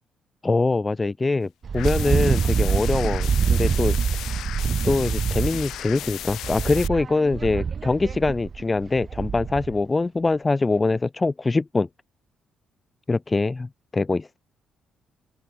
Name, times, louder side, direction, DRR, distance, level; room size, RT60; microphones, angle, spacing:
voice 1, 0.4-4.0 4.8-11.9 13.1-14.4, left 3 dB, 25° left, 1.2 m, -23 dB
Wind, 1.6-9.8, right 6 dB, 45° right, 2.2 m, -25 dB
sound 1, 1.7-6.9, left 13 dB, 80° left, 1.7 m, -35 dB
open air
cardioid pair, 90°, 0 cm